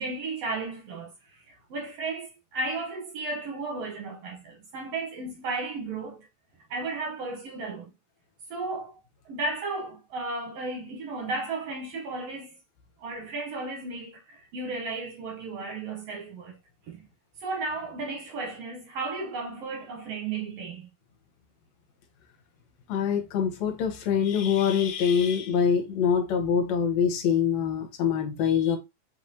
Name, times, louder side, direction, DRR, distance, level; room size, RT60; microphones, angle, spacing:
voice 1, 0.0-6.2 6.7-7.9 8.5-8.9 9.2-12.6 13.0-16.6 16.9-17.1 17.4-20.9, right 3 dB, 70° right, 1.6 m, -34 dB
voice 2, 22.9-28.8, left 7 dB, 70° left, 2.1 m, -24 dB
5.4 x 3.2 x 2.7 m
omnidirectional pair, 3.5 m